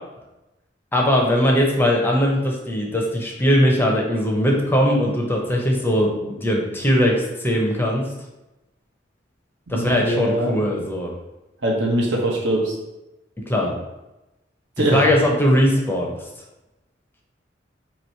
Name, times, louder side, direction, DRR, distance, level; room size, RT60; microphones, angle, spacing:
voice 1, 0.9-8.1 9.7-11.1 13.5-13.8 14.9-16.2, equal, 10° left, -1 dB, 0.6 m, -20 dB
voice 2, 9.7-10.6 11.6-12.7 14.8-15.1, right 1 dB, 70° right, -2 dB, 1.0 m, -22 dB
3.0 x 2.9 x 4.3 m, 0.98 s
head